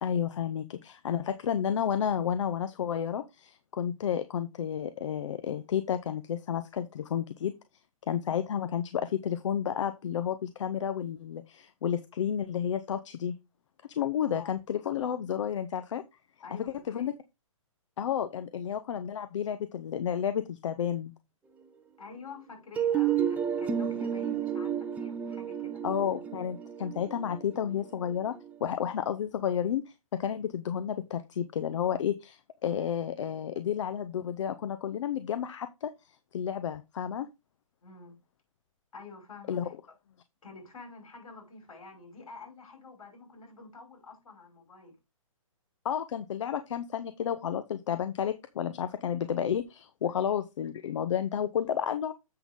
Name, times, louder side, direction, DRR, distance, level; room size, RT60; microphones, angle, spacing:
voice 1, 0.0-7.5 8.1-13.3 14.0-16.0 16.5-17.1 18.0-21.1 25.8-28.3 28.6-29.8 30.2-35.9 36.3-37.3 39.5-39.7 45.8-52.1, left 9 dB, 60° left, 0.7 m, -31 dB
voice 2, 16.4-17.1 22.0-25.8 37.8-38.2 38.9-39.7 40.4-45.0 50.0-50.3, left 4 dB, 80° left, 5.5 m, -48 dB
sound 1, 22.8-28.6, right 9 dB, 10° right, 0.7 m, -31 dB
7.7 x 6.2 x 3.7 m
hypercardioid pair, 150°, 18 cm